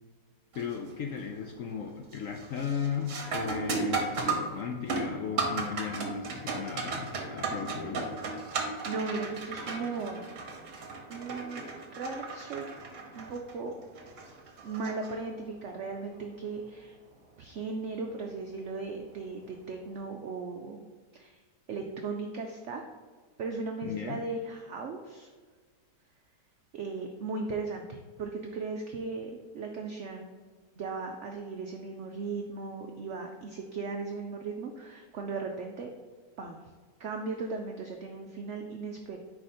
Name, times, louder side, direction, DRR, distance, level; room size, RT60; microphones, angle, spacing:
voice 1, 0.5-8.2 23.8-24.2, left 7 dB, 70° left, 2 dB, 0.7 m, -36 dB
sound 1, 0.5-0.9 1.3-1.8 2.1-15.6 18.1-18.2 19.1-19.3, right 3 dB, 50° right, 1.2 m, -35 dB
voice 2, 8.8-10.3 11.1-12.7 13.2-13.7 14.6-17.0 17.4-20.8 21.1-21.4 21.7-22.8 23.4-25.3 26.7-30.3 30.8-35.9 36.4-36.6 37.0-39.2, right 4 dB, 80° right, 3 dB, 0.6 m, -37 dB
4.9 x 4.8 x 4.2 m, 1.5 s
omnidirectional pair, 1.9 m